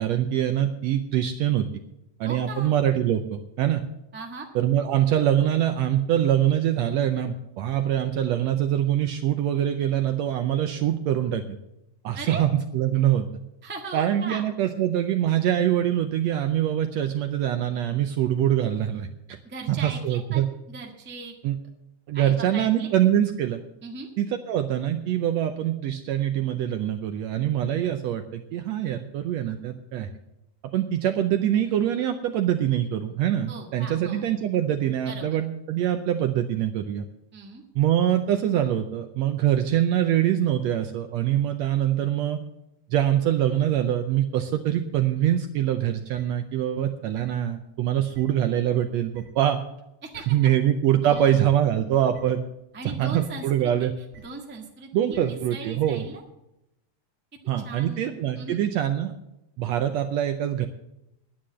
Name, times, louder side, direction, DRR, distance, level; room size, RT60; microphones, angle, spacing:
voice 1, 0.0-1.7 2.2-3.8 4.5-11.6 12.0-13.3 13.9-19.4 19.7-20.5 21.4-21.6 22.1-23.6 24.2-30.1 30.7-37.0 37.7-42.4 42.9-49.6 50.3-52.4 52.8-53.9 54.9-56.1 57.5-59.1 59.6-60.7, right 11 dB, 80° right, 6 dB, 1.6 m, -24 dB
voice 2, 2.2-2.7 4.1-4.5 12.1-12.4 13.6-14.4 19.4-21.3 22.1-22.9 23.8-24.1 33.5-34.5 35.0-35.4 37.3-37.6 50.0-50.2 51.0-51.4 52.7-53.9 54.2-56.2 57.6-58.6, right 3 dB, 15° right, 1 dB, 0.4 m, -39 dB
sound 1, 46.1-46.2 47.1-47.2 48.1-48.2 49.1-49.2 50.1-50.2 51.1-51.2 52.1-52.2 53.1-53.2 54.1-54.2 55.1-55.2 55.8-55.9, right 1 dB, 15° left, 3.9 m, -48 dB
10.0 x 9.6 x 7.4 m, 0.88 s
omnidirectional pair, 3.6 m